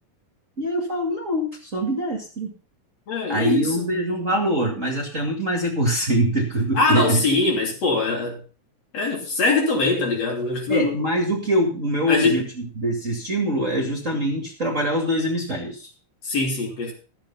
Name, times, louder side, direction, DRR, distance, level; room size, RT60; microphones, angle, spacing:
voice 1, 0.6-2.5 3.3-7.2 10.7-15.9, right 1 dB, 25° right, 0 dB, 2.3 m, -24 dB
voice 2, 3.1-3.9 6.8-8.4 8.9-11.1 12.1-12.4 16.2-16.9, left 3 dB, 50° left, 0 dB, 4.0 m, -22 dB
14.0 x 7.7 x 5.7 m, 0.38 s
omnidirectional pair, 3.8 m